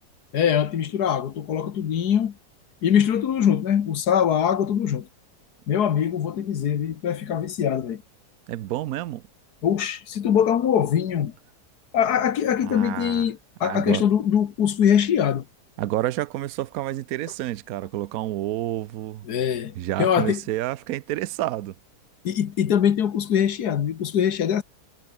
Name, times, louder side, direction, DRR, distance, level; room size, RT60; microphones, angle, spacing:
voice 1, 0.3-2.4 2.8-5.1 5.7-8.0 9.6-11.3 11.9-15.5 19.3-20.4 22.2-24.6, left 9 dB, 80° left, 1.7 m, -22 dB
voice 2, 8.5-9.2 12.6-13.3 13.6-14.1 15.8-19.3 19.8-21.7, right 14 dB, 70° right, 1.1 m, -29 dB
omnidirectional pair, 1.7 m